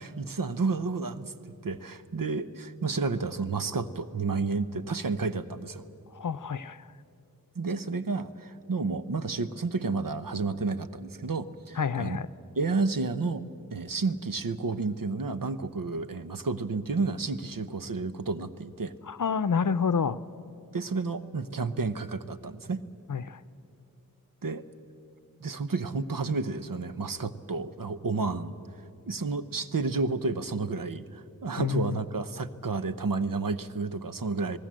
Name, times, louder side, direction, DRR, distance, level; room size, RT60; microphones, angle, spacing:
voice 1, 0.0-1.3 1.6-5.8 7.5-12.2 12.6-13.4 13.7-18.9 20.7-22.8 24.4-24.6 25.4-28.6 29.1-34.6, right 4 dB, 70° right, 12 dB, 1.0 m, -31 dB
voice 2, 6.1-6.9 11.8-12.3 19.0-20.2 23.1-23.4 31.6-32.0, left 6 dB, 65° left, 14 dB, 0.7 m, -28 dB
26.5 x 18.5 x 7.6 m, 2.6 s
wide cardioid pair, 45°, 35 cm